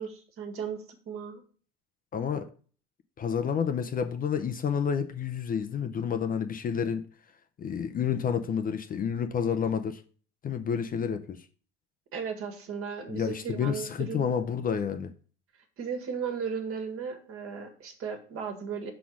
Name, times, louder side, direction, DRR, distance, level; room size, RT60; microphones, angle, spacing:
voice 1, 0.0-1.4 12.1-14.3 15.8-18.9, right 6 dB, 45° right, 1.7 m, -36 dB
voice 2, 2.1-2.5 3.2-7.0 7.6-10.0 10.4-11.4 13.1-15.1, left 7 dB, 30° left, 0.6 m, -29 dB
5.7 x 4.2 x 6.2 m
hypercardioid pair, 90°, 31 cm